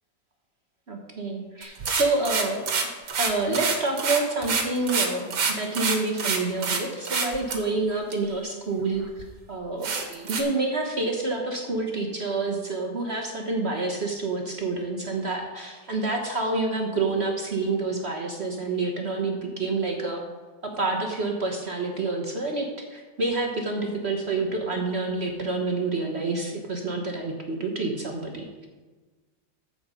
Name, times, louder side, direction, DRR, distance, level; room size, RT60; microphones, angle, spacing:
voice 1, 0.9-2.6 3.2-20.2 20.6-28.7, right 3 dB, 40° right, 2 dB, 1.2 m, -28 dB
sound 1, 1.6-6.8 7.0-7.6 8.1-8.2 8.8-8.9 9.2-9.3 9.8-10.4, right 5 dB, 70° right, 1.9 m, -26 dB
14.5 x 5.0 x 5.6 m, 1.3 s
omnidirectional pair, 1.9 m